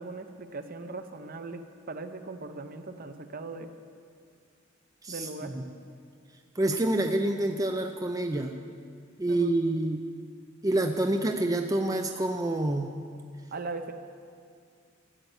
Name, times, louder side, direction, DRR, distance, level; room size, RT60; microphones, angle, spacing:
voice 1, 0.0-3.7 5.1-5.6 9.3-9.5 13.5-13.9, right 3 dB, 45° right, 8 dB, 0.9 m, -39 dB
voice 2, 5.0-5.7 6.6-8.5 9.2-10.0 10.6-12.9, right 1 dB, 20° right, 5 dB, 0.5 m, -27 dB
15.0 x 9.4 x 8.0 m, 2.3 s
head